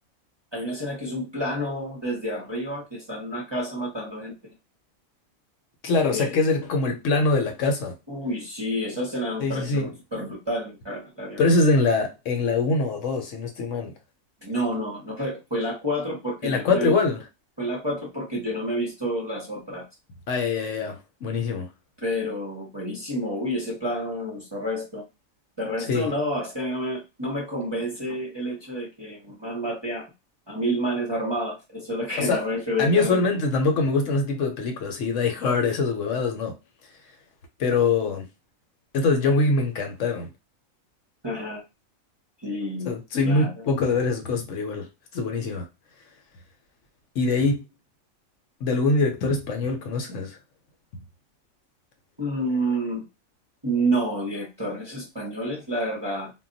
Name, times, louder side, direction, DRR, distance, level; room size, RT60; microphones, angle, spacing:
voice 1, 0.5-4.3 6.1-6.3 8.1-11.4 14.4-16.9 17.6-19.8 22.0-25.0 25.6-30.1 30.5-33.2 41.2-41.6 42.4-42.9 43.2-43.7 52.2-53.1 53.6-56.3, equal, 25° right, 0.7 m, -29 dB
voice 2, 5.8-7.9 9.4-10.0 11.4-13.9 16.4-17.2 20.3-21.7 25.9-26.1 32.2-32.4 32.8-36.6 37.6-38.2 38.9-40.3 42.9-44.9 45.1-45.7 47.1-47.6 48.6-50.4 50.9-51.0, left 3 dB, 70° left, 1.0 m, -23 dB
2.3 x 2.2 x 3.8 m
omnidirectional pair, 1.4 m